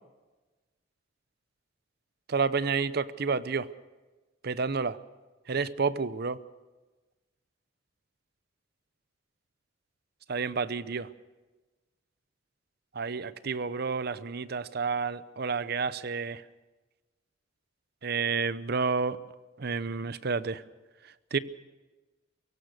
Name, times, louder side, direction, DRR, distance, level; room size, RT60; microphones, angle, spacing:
voice 1, 2.3-3.7 4.4-5.0 5.5-6.4 10.3-11.1 12.9-16.4 18.0-19.2 19.6-20.6 21.3-21.4, right 5 dB, 55° right, 16 dB, 0.7 m, -30 dB
24.0 x 16.0 x 6.7 m, 1.2 s
head